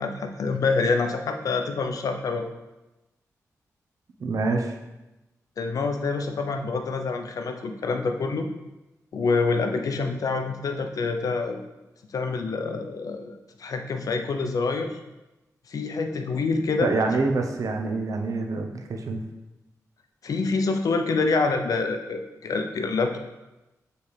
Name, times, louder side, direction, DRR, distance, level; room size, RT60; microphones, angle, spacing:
voice 1, 0.0-2.5 5.6-8.5 9.1-11.6 12.1-15.0 15.7-17.0 20.2-23.2, left 4 dB, 70° left, 6 dB, 0.6 m, -26 dB
voice 2, 4.2-4.7 16.8-19.2, right 3 dB, 65° right, 4 dB, 0.8 m, -26 dB
7.0 x 4.3 x 3.3 m, 1.0 s
cardioid pair, 70°, 6 cm